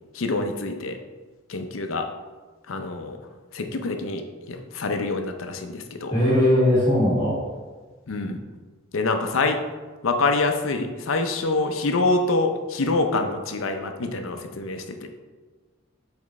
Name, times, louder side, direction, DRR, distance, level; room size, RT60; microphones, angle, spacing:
voice 1, 0.1-1.0 1.5-2.1 2.7-3.2 3.5-6.1 8.1-8.4 8.9-9.6 10.0-15.1, left 3 dB, 85° left, 6 dB, 0.6 m, -26 dB
voice 2, 6.1-7.4, left 1 dB, 25° left, -11 dB, 1.9 m, -19 dB
7.3 x 4.5 x 3.1 m, 1.4 s
head